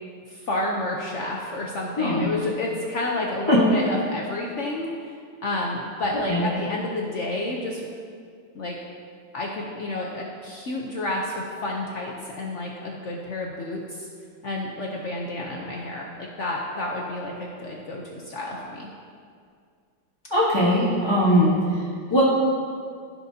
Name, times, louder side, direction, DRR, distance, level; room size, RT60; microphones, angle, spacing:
voice 1, 0.3-5.1 5.4-7.9 8.5-8.8 9.3-14.1 14.4-18.9, left 2 dB, 70° left, -1 dB, 0.7 m, -30 dB
voice 2, 20.3-21.5 22.1-22.2, equal, 20° left, -7 dB, 0.9 m, -20 dB
15.0 x 5.9 x 2.7 m, 2.2 s
omnidirectional pair, 2.2 m